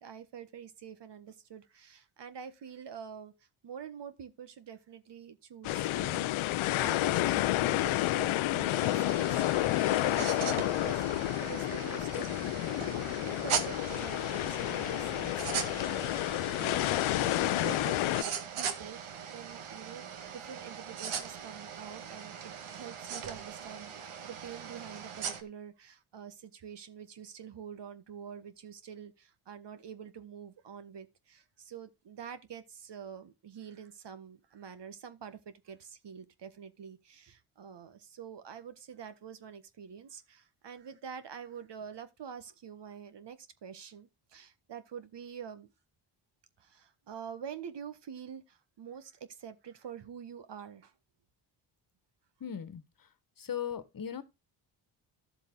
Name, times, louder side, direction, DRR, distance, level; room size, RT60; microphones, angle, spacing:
voice 1, 0.0-6.4 6.8-11.0 11.4-45.7 46.6-50.9, right 7 dB, 55° right, 1.6 m, -46 dB
sound 1, 5.6-18.2, left 16 dB, 70° left, 0.7 m, -30 dB
sound 2, 8.7-25.4, right 7 dB, 75° right, 2.0 m, -40 dB
voice 2, 52.4-53.1 53.4-54.2, left 8 dB, 40° left, 1.6 m, -38 dB
12.0 x 7.4 x 3.9 m
cardioid pair, 70°, 50 cm